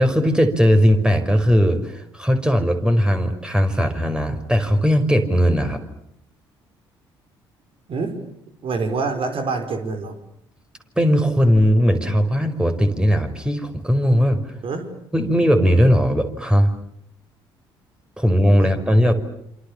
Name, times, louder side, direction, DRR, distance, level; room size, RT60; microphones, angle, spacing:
voice 1, 0.0-5.8 11.0-14.4 15.1-16.7 18.2-19.1, equal, 5° right, 7 dB, 5.3 m, -18 dB
voice 2, 7.9-8.2 8.6-10.2 14.6-14.9 18.6-18.7, right 4 dB, 50° right, 7 dB, 5.7 m, -26 dB
28.5 x 27.5 x 7.3 m, 0.75 s
figure-of-eight pair, 50°, 12 cm